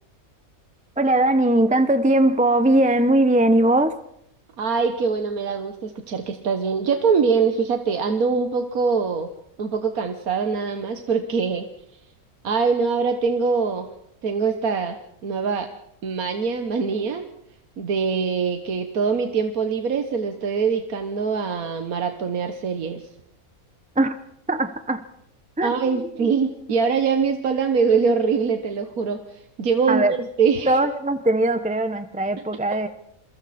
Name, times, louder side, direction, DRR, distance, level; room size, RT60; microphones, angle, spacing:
voice 1, 1.0-3.9 24.0-24.1 24.5-25.0 25.6-25.7 26.0-26.3 29.9-30.1 30.7-32.9, right 1 dB, 5° right, 10 dB, 0.7 m, -20 dB
voice 2, 4.6-9.3 9.6-11.7 11.9-12.0 12.4-13.9 14.2-15.7 16.0-17.3 17.8-23.1 25.6-30.8, right 5 dB, 80° right, 6 dB, 1.7 m, -23 dB
27.5 x 23.5 x 4.3 m, 0.79 s
omnidirectional pair, 1.5 m